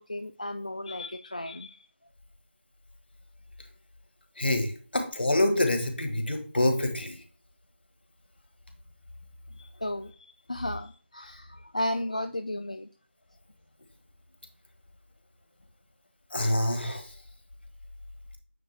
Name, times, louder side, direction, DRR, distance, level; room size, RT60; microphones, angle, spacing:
voice 1, 0.1-1.8 9.8-10.1 10.5-11.5 11.7-12.9, left 1 dB, 35° left, 8 dB, 0.3 m, -33 dB
voice 2, 4.4-7.2 16.3-17.0, left 1 dB, 60° left, 6 dB, 1.5 m, -26 dB
8.9 x 3.6 x 3.4 m, 0.41 s
figure-of-eight pair, 175°, 7 cm